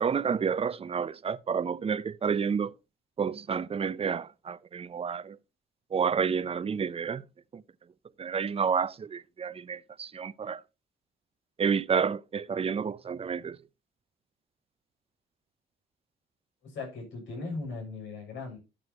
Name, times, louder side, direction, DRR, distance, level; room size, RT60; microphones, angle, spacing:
voice 1, 0.0-2.7 3.2-5.4 5.9-7.2 7.5-7.6 8.2-10.6 11.6-13.6, right 6 dB, 30° right, 0.6 m, -30 dB
voice 2, 16.6-18.6, left 3 dB, 70° left, 7.1 m, -38 dB
14.0 x 7.8 x 2.9 m
cardioid pair, 90°, 20 cm